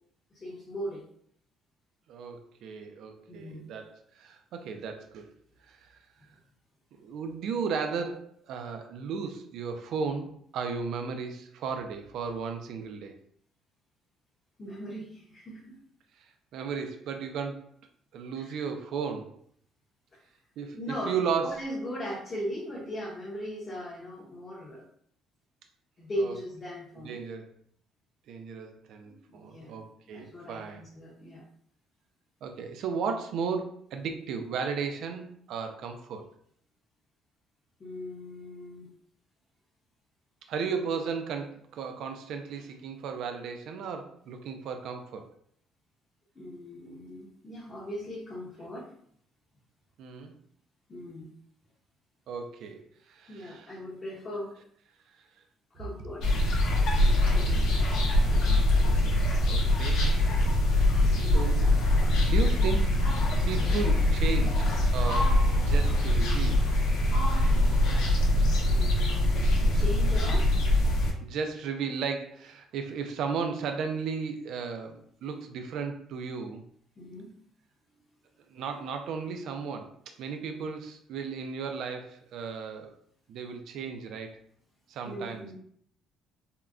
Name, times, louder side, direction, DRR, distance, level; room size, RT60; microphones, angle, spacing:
voice 1, 0.3-1.0 3.3-3.7 14.6-15.7 18.3-18.7 20.1-20.2 20.7-24.8 26.0-27.2 29.2-29.8 30.1-31.4 37.8-38.9 46.4-48.9 50.9-51.3 53.3-54.6 55.7-56.4 57.0-57.6 61.2-61.6 68.7-70.6 77.0-77.3 85.0-85.5, equal, 20° left, -6 dB, 0.5 m, -39 dB
voice 2, 2.1-5.3 5.7-6.0 6.9-13.2 16.2-16.3 16.5-17.7 18.1-19.4 20.6-21.6 26.2-26.3 27.0-27.5 28.3-30.8 32.4-36.3 40.5-45.3 50.0-50.3 52.3-53.8 59.5-60.4 61.0-61.6 62.2-63.0 63.5-64.7 64.9-66.6 71.2-76.6 78.5-82.9 83.3-84.4 84.9-85.4, right 5 dB, 55° right, 6 dB, 0.3 m, -35 dB
sound 1, 56.2-71.1, left 1 dB, 60° left, 0.6 m, -23 dB
3.5 x 2.1 x 2.3 m, 0.63 s
cardioid pair, 180°, 0 cm